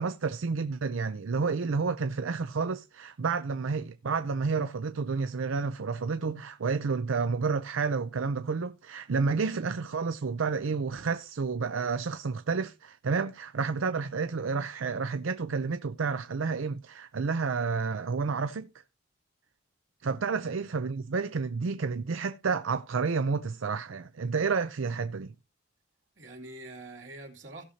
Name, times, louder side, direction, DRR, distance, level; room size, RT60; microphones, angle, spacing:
voice 1, 0.0-18.7 20.0-25.3, right 5 dB, 85° right, 0.5 m, -30 dB
voice 2, 26.2-27.6, right 2 dB, 70° right, 2.8 m, -46 dB
17.0 x 6.5 x 2.8 m
head